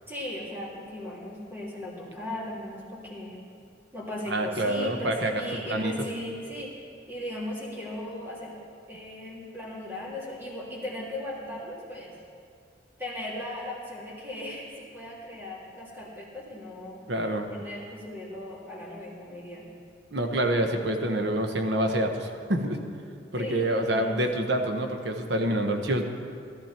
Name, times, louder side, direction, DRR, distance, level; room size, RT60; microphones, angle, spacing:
voice 1, 0.1-3.4 3.9-6.7 7.1-8.5 8.9-12.1 13.0-17.0 17.5-19.7 23.3-24.3, left 1 dB, 15° right, -6 dB, 3.1 m, -37 dB
voice 2, 4.3-5.9 17.1-17.5 20.1-22.8 23.3-26.0, right 1 dB, 65° right, 5 dB, 1.1 m, -27 dB
14.0 x 13.5 x 4.4 m, 2.3 s
head